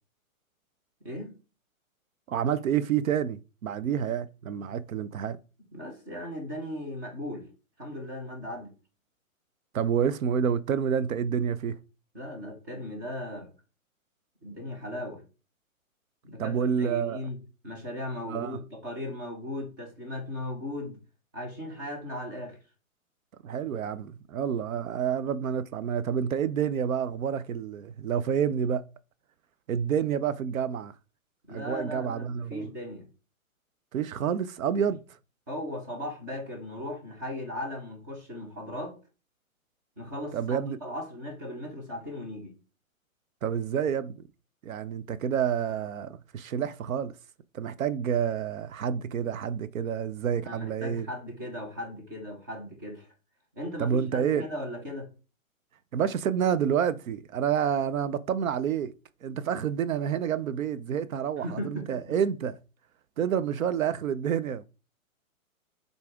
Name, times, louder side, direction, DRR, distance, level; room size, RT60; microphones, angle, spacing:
voice 1, 1.0-1.4 5.7-7.4 7.8-8.7 12.1-13.5 14.4-15.2 16.2-17.4 17.6-21.0 21.3-22.6 31.5-33.1 35.5-38.9 40.0-42.5 50.4-53.1 53.6-55.1 61.4-62.2, left 1 dB, 15° right, 0.7 m, -37 dB
voice 2, 2.3-5.4 9.7-11.8 16.4-17.3 18.3-18.6 23.4-28.9 29.7-30.9 31.5-32.7 33.9-35.0 40.3-40.8 43.4-44.2 44.6-47.1 47.5-51.1 53.8-54.5 55.9-58.9 59.2-62.6 63.2-64.6, right 8 dB, 70° right, 0.6 m, -28 dB
7.0 x 4.0 x 3.4 m
hypercardioid pair, 170°, 42 cm